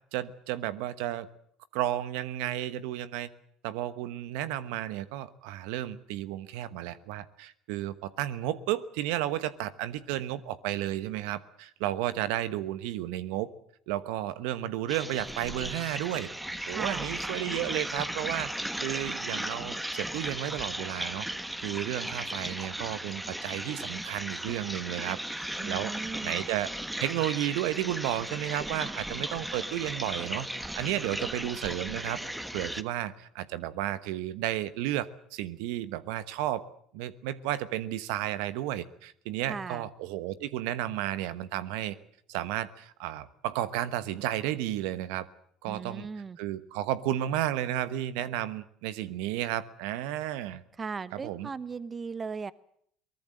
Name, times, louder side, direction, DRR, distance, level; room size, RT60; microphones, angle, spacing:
voice 1, 0.1-1.3 1.7-3.3 3.6-13.5 13.9-16.3 16.6-18.5 18.8-21.3 21.6-26.7 27.0-30.5 30.8-32.2 32.5-36.6 36.9-41.9 42.3-45.3 45.6-46.1 46.4-50.6 51.1-51.5, right 13 dB, 75° right, 14 dB, 1.2 m, -33 dB
sound 1, 14.9-32.8, right 1 dB, 5° right, 1.5 m, -36 dB
voice 2, 16.7-17.1 25.6-26.5 39.5-39.9 45.7-46.4 50.8-52.5, right 5 dB, 30° right, 17 dB, 0.9 m, -37 dB
23.0 x 20.0 x 7.8 m, 0.67 s
hypercardioid pair, 70°, 0 cm